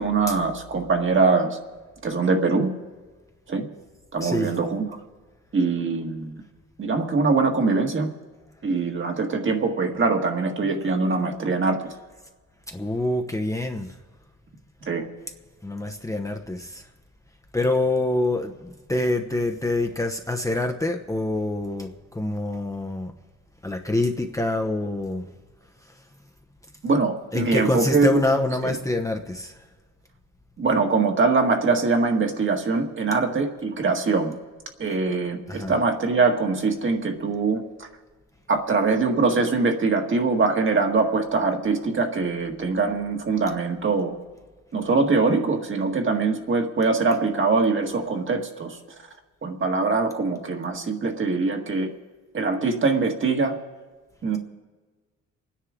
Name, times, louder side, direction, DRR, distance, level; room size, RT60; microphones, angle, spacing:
voice 1, 0.0-1.6 2.0-2.7 3.5-3.7 4.1-4.9 5.5-6.4 6.8-8.1 8.6-11.9 14.9-15.1 26.8-28.2 28.7-28.8 30.6-34.4 34.8-37.9 38.5-44.2 44.7-48.8 49.4-51.9 52.3-53.6 54.2-54.4, right 4 dB, 40° right, 3 dB, 1.8 m, -23 dB
voice 2, 4.2-4.5 12.7-13.9 15.6-16.9 17.5-23.1 23.6-25.3 26.0-26.1 27.3-29.6 35.5-35.7, left 2 dB, 10° left, 4 dB, 0.9 m, -26 dB
28.0 x 10.0 x 3.7 m, 1.4 s
cardioid pair, 90°, 30 cm